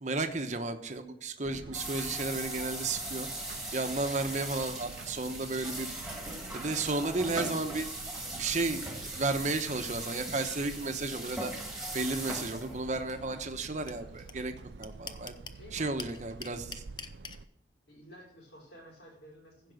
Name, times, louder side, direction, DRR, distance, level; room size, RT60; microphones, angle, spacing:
voice 1, 0.0-3.3 3.7-5.9 6.5-7.9 8.3-11.5 11.9-14.5 14.8-15.3 15.7-16.8, right 3 dB, 40° right, 7 dB, 1.0 m, -33 dB
sound 1, 1.4-17.5, right 3 dB, 75° right, 0.5 m, -48 dB
sound 2, 1.7-14.4, right 2 dB, 5° right, 1.9 m, -40 dB
sound 3, 13.9-14.0 14.3-14.4 14.6-15.6 16.0-17.4, left 5 dB, 25° left, 0.6 m, -41 dB
voice 2, 15.5-16.3 17.9-19.7, equal, 75° left, -2 dB, 4.7 m, -52 dB
15.5 x 5.2 x 6.5 m, 0.73 s
head